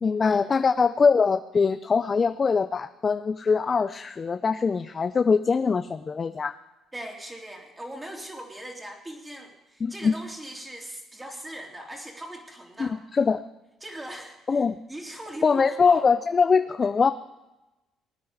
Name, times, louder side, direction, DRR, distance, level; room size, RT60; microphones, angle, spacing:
voice 1, 0.0-6.5 9.8-10.1 12.8-13.4 14.5-14.8 15.4-17.1, left 5 dB, 35° left, 11 dB, 0.5 m, -22 dB
voice 2, 6.9-13.0 13.8-16.0, right 1 dB, 15° right, 1 dB, 3.1 m, -40 dB
20.0 x 9.6 x 4.9 m, 1.0 s
cardioid pair, 85°, 0 cm